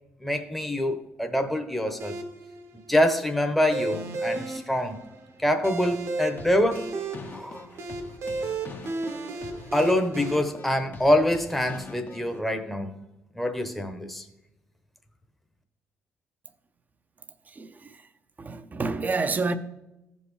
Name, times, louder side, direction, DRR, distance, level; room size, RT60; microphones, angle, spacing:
voice 1, 0.2-2.2 2.9-5.0 5.4-6.9 7.3-7.7 9.7-13.0 13.4-14.2, left 1 dB, 5° left, 0.9 m, -25 dB
sound 1, 2.0-10.3, right 3 dB, 60° right, 1.2 m, -34 dB
sound 2, 6.4-12.4, left 4 dB, 40° left, 0.9 m, -43 dB
voice 2, 17.5-18.1 18.4-19.6, right 3 dB, 35° right, 0.7 m, -29 dB
14.5 x 5.4 x 3.2 m
cardioid pair, 80°, 5 cm